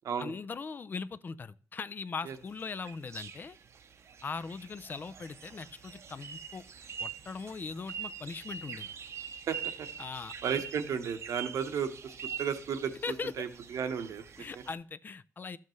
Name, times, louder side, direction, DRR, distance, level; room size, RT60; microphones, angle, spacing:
voice 1, 0.2-3.6 4.2-6.6 7.0-8.9 10.0-10.3 13.0-13.4 14.4-15.6, left 4 dB, 35° left, 0.4 m, -40 dB
sound 1, 2.3-14.7, right 7 dB, 60° right, 0.7 m, -44 dB
voice 2, 9.5-9.9 10.4-12.9 13.4-14.2 14.5-14.6, right 7 dB, 85° right, 1.1 m, -34 dB
12.5 x 7.3 x 3.2 m
wide cardioid pair, 125°, 5 cm